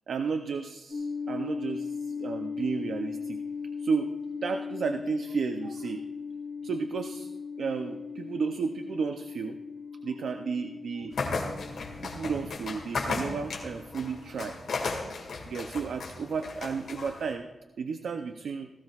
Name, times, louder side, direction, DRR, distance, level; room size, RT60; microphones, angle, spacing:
voice 1, 0.1-3.4 3.8-4.1 4.4-6.0 6.6-7.3 7.6-9.6 10.0-11.1 12.0-14.6 15.5-17.5 17.8-18.7, right 5 dB, 85° right, 7 dB, 0.5 m, -33 dB
sound 1, 0.9-14.4, left 5 dB, 55° left, 1.5 m, -38 dB
sound 2, 11.1-17.3, left 3 dB, 90° left, 2.0 m, -35 dB
17.5 x 15.0 x 2.4 m, 1.1 s
wide cardioid pair, 135°, 0 cm